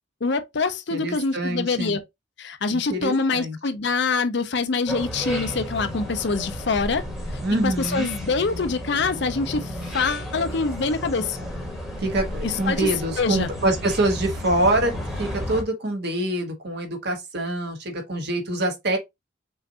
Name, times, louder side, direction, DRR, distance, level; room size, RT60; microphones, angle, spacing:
voice 1, 0.2-2.0 2.4-7.0 7.6-11.4 12.4-12.9 13.2-13.5, left 4 dB, 60° left, 0.6 m, -25 dB
voice 2, 0.9-2.0 2.7-3.6 7.4-8.1 12.0-19.0, right 1 dB, 60° right, 1.3 m, -25 dB
sound 1, 4.9-15.6, equal, ahead, 1.3 m, -33 dB
5.6 x 2.5 x 2.8 m
head